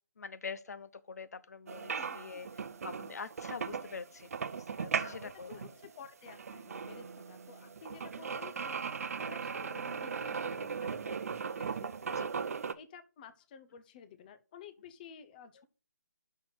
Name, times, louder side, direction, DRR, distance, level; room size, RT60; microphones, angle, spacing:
voice 1, 0.2-2.5 2.8-5.5 10.5-10.6 12.1-12.3, left 5 dB, 65° left, 0.6 m, -45 dB
sound 1, 1.7-12.7, right 6 dB, 60° right, 0.6 m, -38 dB
voice 2, 5.0-15.6, left 7 dB, 30° left, 0.7 m, -52 dB
6.1 x 4.2 x 6.4 m
figure-of-eight pair, 145°, 9 cm